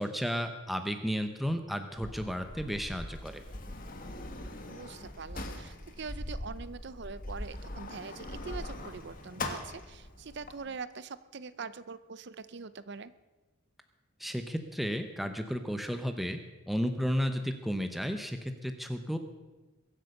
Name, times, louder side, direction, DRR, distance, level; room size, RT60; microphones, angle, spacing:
voice 1, 0.0-3.4 14.2-16.4 16.7-19.2, equal, ahead, 7 dB, 0.8 m, -33 dB
Sliding door, 1.9-10.5, left 1 dB, 40° left, 1.7 m, -41 dB
voice 2, 4.7-13.1, right 5 dB, 55° right, 15 dB, 0.6 m, -43 dB
22.5 x 8.2 x 6.6 m, 1.2 s
head